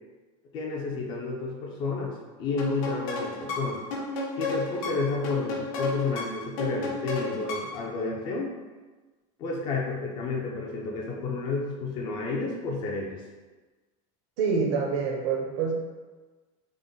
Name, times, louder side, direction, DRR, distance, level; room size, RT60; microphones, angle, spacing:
voice 1, 0.5-3.8 4.4-8.5 9.4-13.2, left 4 dB, 25° left, -1 dB, 0.4 m, -31 dB
sound 1, 2.6-7.9, left 3 dB, 70° left, 0.8 m, -32 dB
voice 2, 14.4-15.7, right 5 dB, 65° right, 1 dB, 0.7 m, -26 dB
3.6 x 2.0 x 3.8 m, 1.3 s
supercardioid pair, 175°, 18 cm